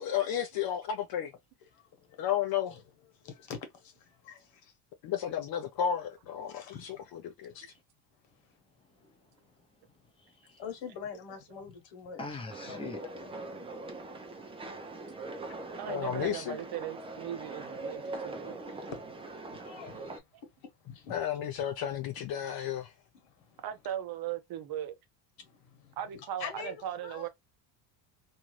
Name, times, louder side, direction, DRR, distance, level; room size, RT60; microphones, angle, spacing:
voice 1, 0.0-1.3 2.2-2.8 5.0-7.0 7.2-7.6 15.9-16.6 21.1-22.9, left 9 dB, 50° left, 0.5 m, -32 dB
voice 2, 1.7-2.3 2.7-2.8 3.1-4.7 6.4-7.7 8.4-8.6 9.0-9.5 10.6-12.2 12.7-13.3 14.6-14.7 18.4-21.2 22.2-22.3 23.1-23.6 25.4-27.3, left 7 dB, 65° left, 1.3 m, -46 dB
voice 3, 8.5-10.6 12.2-13.1 14.2-14.8 19.7-19.8, left 2 dB, 10° left, 0.7 m, -46 dB
sound 1, 12.5-20.2, right 2 dB, 15° right, 0.3 m, -42 dB
voice 4, 15.8-18.6 20.3-20.4 23.6-25.0 26.0-27.3, right 10 dB, 50° right, 0.7 m, -38 dB
2.6 x 2.3 x 3.1 m
supercardioid pair, 105°, 48 cm